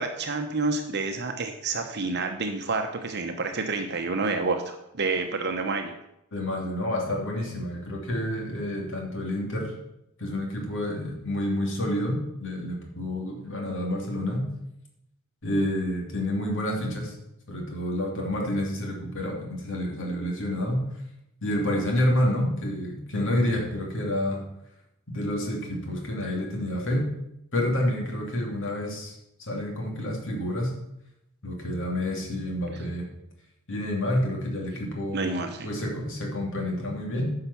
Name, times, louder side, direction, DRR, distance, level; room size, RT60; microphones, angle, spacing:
voice 1, 0.0-5.9 35.1-35.7, right 3 dB, 50° right, 5 dB, 0.9 m, -29 dB
voice 2, 6.3-9.7 10.2-14.4 15.4-17.1 17.5-20.8 21.4-24.4 25.1-27.1 27.5-29.1 29.4-30.7 31.4-33.1 33.7-35.3 35.6-37.3, left 1 dB, 60° left, 0 dB, 2.8 m, -28 dB
10.5 x 5.8 x 7.0 m, 0.82 s
head